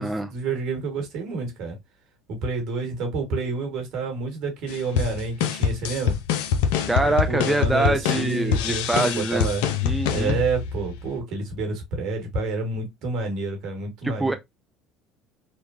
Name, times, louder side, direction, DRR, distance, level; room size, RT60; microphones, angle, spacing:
voice 1, 0.0-1.8 2.3-6.1 7.0-9.7 10.1-14.4, right 3 dB, 65° right, 1.3 m, -29 dB
sound 1, 4.7-11.2, left 8 dB, 80° left, 0.4 m, -25 dB
voice 2, 6.9-9.5 9.8-10.4 14.0-14.3, right 2 dB, 5° right, 0.4 m, -24 dB
3.1 x 2.1 x 2.4 m
supercardioid pair, 85°, 0 cm